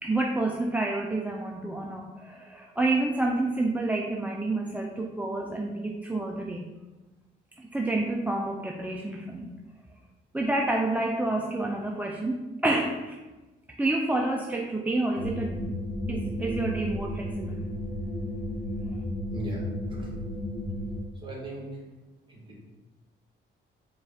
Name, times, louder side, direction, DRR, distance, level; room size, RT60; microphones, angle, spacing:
voice 1, 0.0-6.7 7.6-9.5 10.3-13.2 13.8-15.7 16.1-17.6, right 2 dB, 10° right, 0 dB, 0.3 m, -29 dB
sound 1, 15.2-21.0, left 1 dB, 45° left, 0.7 m, -33 dB
voice 2, 19.3-20.2 21.2-21.7 22.3-22.6, right 1 dB, 25° right, -3 dB, 1.4 m, -38 dB
4.6 x 2.4 x 3.5 m, 1.2 s
cardioid pair, 90°, 20 cm